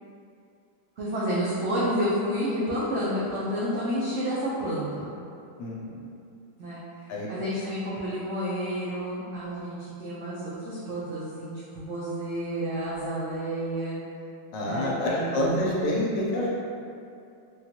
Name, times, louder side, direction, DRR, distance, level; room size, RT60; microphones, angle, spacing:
voice 1, 1.0-5.1 6.6-6.8 7.3-14.0 14.6-15.7, equal, 80° right, -9 dB, 0.6 m, -30 dB
voice 2, 5.6-6.0 7.1-7.3 14.5-16.5, left 1 dB, 75° left, -4 dB, 1.2 m, -27 dB
3.6 x 2.3 x 2.8 m, 2.5 s
omnidirectional pair, 2.0 m